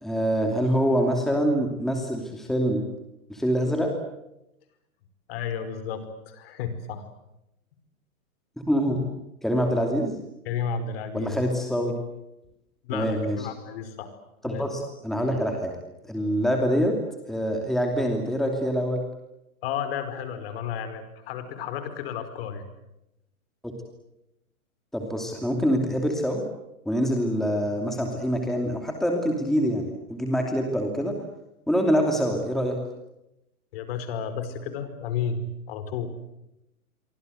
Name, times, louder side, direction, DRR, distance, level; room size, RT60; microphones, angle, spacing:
voice 1, 0.0-2.8 3.3-3.9 8.6-9.0 9.4-10.2 11.1-11.9 12.9-13.5 14.4-15.7 16.1-16.9 17.3-19.0 23.6-23.7 24.9-26.4 26.8-31.1 31.7-32.8, equal, ahead, 2 dB, 2.8 m, -25 dB
voice 2, 5.3-7.0 10.4-11.4 12.8-14.1 14.4-14.6 19.6-22.6 33.7-36.1, left 7 dB, 40° left, 10 dB, 5.0 m, -32 dB
29.0 x 24.5 x 8.0 m, 0.87 s
hypercardioid pair, 155°, 43 cm